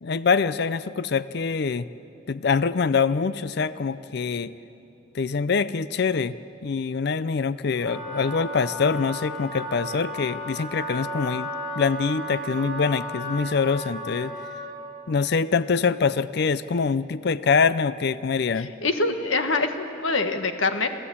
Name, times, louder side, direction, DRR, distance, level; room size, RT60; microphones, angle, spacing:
voice 1, 0.0-1.9 2.3-4.5 5.1-6.4 6.6-11.5 11.8-14.3 15.1-18.7, left 5 dB, 55° left, 15 dB, 0.5 m, -24 dB
Wind instrument woodwind instrument, 7.7-14.8, equal, ahead, 6.0 m, -34 dB
voice 2, 18.5-20.9, left 3 dB, 75° left, 7 dB, 1.5 m, -25 dB
28.0 x 15.0 x 8.6 m, 2.9 s
head